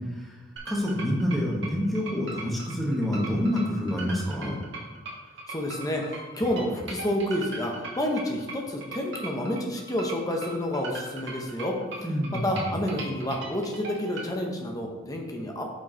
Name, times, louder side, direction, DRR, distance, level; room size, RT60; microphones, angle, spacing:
voice 1, 0.6-4.6 12.0-12.7, equal, ahead, -3 dB, 1.1 m, -27 dB
sound 1, 0.6-14.3, right 3 dB, 60° right, 1.4 m, -39 dB
voice 2, 5.5-11.7 12.4-15.6, left 1 dB, 15° left, 1 dB, 0.8 m, -29 dB
6.2 x 4.6 x 4.3 m, 1.2 s
head